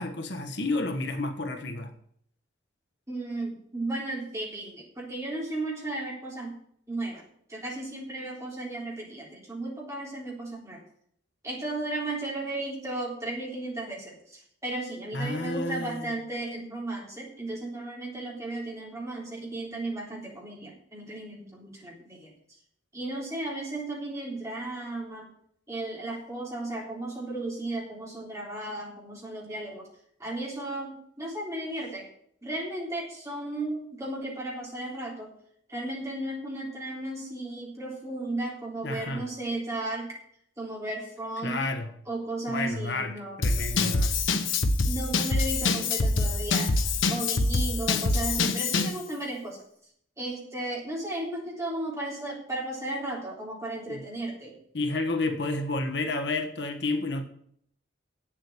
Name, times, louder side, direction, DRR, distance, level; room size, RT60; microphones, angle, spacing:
voice 1, 0.0-1.9 15.1-16.1 38.8-39.3 41.4-41.9 42.5-44.2 53.9-54.0 54.7-57.2, left 2 dB, 65° left, 1.2 m, -31 dB
voice 2, 3.1-6.5 6.9-7.2 7.5-10.8 11.4-22.3 22.9-25.3 25.7-29.9 30.2-32.1 32.4-35.3 35.7-40.1 40.6-41.7 42.1-43.4 44.8-46.7 47.1-49.6 50.2-54.6, right 2 dB, 15° right, 3.5 m, -35 dB
Drum kit / Drum, 43.4-49.0, left 3 dB, 85° left, 1.1 m, -25 dB
8.3 x 7.5 x 8.7 m
head